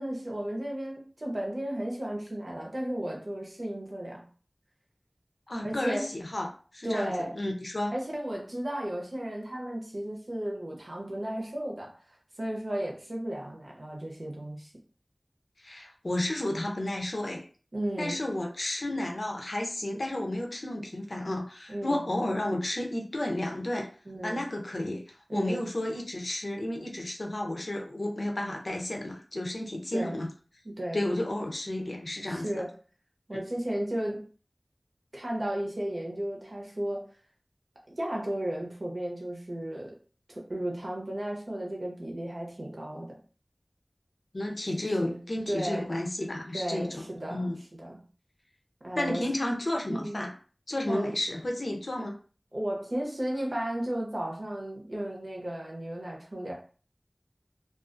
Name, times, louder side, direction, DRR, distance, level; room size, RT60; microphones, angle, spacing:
voice 1, 0.0-4.2 5.6-6.1 6.8-7.4 7.9-11.9 12.4-14.7 17.7-18.2 21.7-22.0 24.0-24.4 25.3-25.6 29.9-30.2 30.6-31.0 32.3-32.8 33.3-34.3 35.1-37.1 37.9-40.0 40.3-43.2 45.0-45.2 45.5-45.9 46.5-48.0 48.8-49.2 49.9-50.2 50.9-51.1 52.5-56.5, right 1 dB, 75° right, -1 dB, 0.8 m, -34 dB
voice 2, 5.5-6.5 6.7-7.9 15.6-17.5 18.0-23.9 24.2-25.0 25.3-30.3 30.9-32.6 44.3-47.0 47.3-47.6 49.0-50.3 50.7-52.1, left 1 dB, 80° left, 1 dB, 0.5 m, -32 dB
2.4 x 2.3 x 2.5 m, 0.39 s
wide cardioid pair, 40°, 0 cm